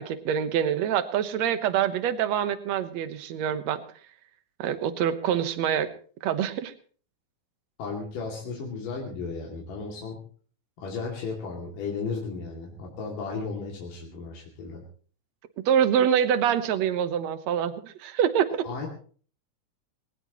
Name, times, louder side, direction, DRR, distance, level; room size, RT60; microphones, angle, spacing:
voice 1, 0.0-3.8 4.6-5.9 6.2-6.7 15.7-18.7, right 9 dB, 65° right, 11 dB, 2.3 m, -25 dB
voice 2, 7.8-10.2 10.8-14.8 18.6-18.9, left 4 dB, 90° left, -1 dB, 4.3 m, -34 dB
20.5 x 19.0 x 3.1 m, 0.43 s
omnidirectional pair, 3.7 m